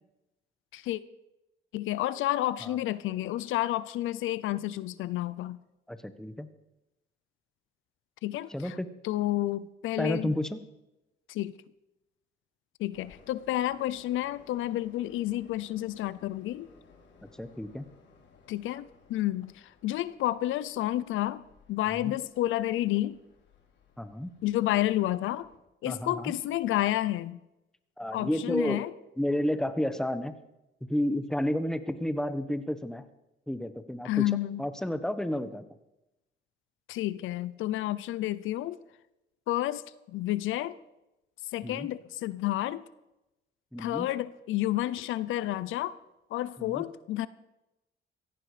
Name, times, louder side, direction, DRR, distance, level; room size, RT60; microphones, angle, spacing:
voice 1, 1.7-5.6 8.2-8.7 9.0-10.3 11.3-11.5 12.8-16.7 18.5-23.2 24.4-25.5 25.8-27.4 28.1-28.9 34.0-34.6 36.9-38.8 39.5-39.8 40.1-40.8 41.5-42.8 43.8-46.0 46.3-47.3, left 14 dB, 85° left, 17 dB, 0.7 m, -30 dB
voice 2, 5.9-6.5 8.5-8.9 10.0-10.6 17.4-17.8 22.0-22.1 24.0-24.3 25.8-26.3 28.0-28.8 29.2-30.4 30.9-33.0 33.5-34.2 34.6-35.6 41.6-41.9 43.7-44.1 46.6-46.8, left 1 dB, 5° left, 11 dB, 1.3 m, -31 dB
Train, 12.9-25.6, left 5 dB, 65° left, 3.7 m, -60 dB
17.0 x 14.5 x 5.1 m, 0.93 s
cardioid pair, 90°, 20 cm